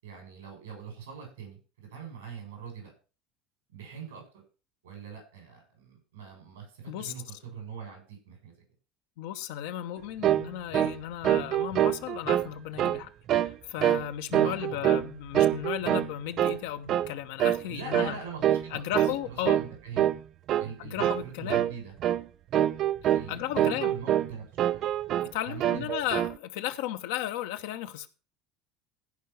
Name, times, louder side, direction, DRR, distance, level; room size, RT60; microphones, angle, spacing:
voice 1, 0.0-2.9 3.7-4.4 4.8-8.5 14.4-14.8 17.7-20.1 20.6-21.9 23.1-24.4 25.4-25.9, right 6 dB, 75° right, 6.8 m, -43 dB
voice 2, 9.2-18.2 18.7-19.6 20.8-21.6 23.0-24.0 25.2-28.1, left 12 dB, 65° left, 1.0 m, -35 dB
sound 1, 10.2-10.5 10.7-11.0 11.2-12.5 12.8-13.0 13.3-13.5 13.8-14.1 14.3-15.1 15.3-16.1 16.4-16.6 16.9-17.1 17.4-17.6 17.9-18.1 18.4-18.7 18.9-19.2 19.5-19.7 20.0-20.2 20.5-20.7 21.0-21.3 21.5-21.7 22.0-22.2 22.5-23.3 23.6-24.3 24.6-25.3 25.6-26.3, right 11 dB, 45° right, 0.5 m, -25 dB
15.5 x 5.6 x 5.6 m
figure-of-eight pair, 70°, 0 cm